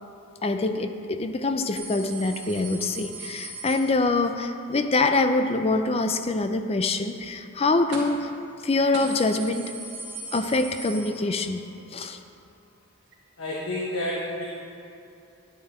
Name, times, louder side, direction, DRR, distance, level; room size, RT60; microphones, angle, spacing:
voice 1, 0.4-8.3 8.6-9.7 10.3-11.6 11.9-12.2, left 3 dB, 25° left, 7 dB, 0.4 m, -25 dB
sound 1, 1.8-4.5 7.9-8.3 8.6-8.7 8.9-11.7 12.0-12.1 13.1-13.2, right 3 dB, 55° right, 1.8 m, -39 dB
voice 2, 13.4-14.4, left 1 dB, 65° left, -5 dB, 1.4 m, -29 dB
10.5 x 9.3 x 4.4 m, 2.7 s
head